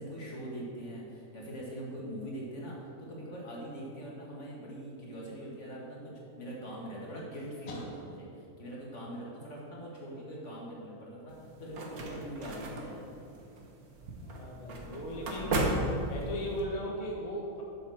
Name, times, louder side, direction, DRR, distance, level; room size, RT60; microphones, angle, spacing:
voice 1, 0.0-13.3, right 1 dB, 55° left, -4 dB, 2.4 m, -42 dB
sound 1, 11.3-16.6, right 2 dB, 80° right, 1.7 m, -35 dB
voice 2, 14.2-15.6 16.0-17.6, equal, 30° left, -2 dB, 1.0 m, -37 dB
7.8 x 7.2 x 6.5 m, 2.7 s
omnidirectional pair, 1.5 m